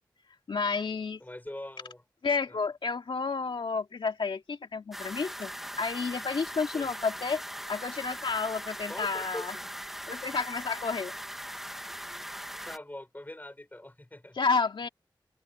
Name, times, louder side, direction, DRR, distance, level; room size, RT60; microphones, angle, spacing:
voice 1, 0.5-1.2 2.2-5.5 5.8-7.4 7.7-9.5 10.1-11.1 14.4-14.9, left 4 dB, 85° left, 2.2 m, -30 dB
voice 2, 1.2-2.0 2.5-2.6 6.7-6.9 8.9-9.7 12.6-14.4, left 1 dB, 20° left, 5.7 m, -43 dB
sound 1, 4.9-12.8, equal, 5° right, 1.6 m, -40 dB
cardioid pair, 45°, 8 cm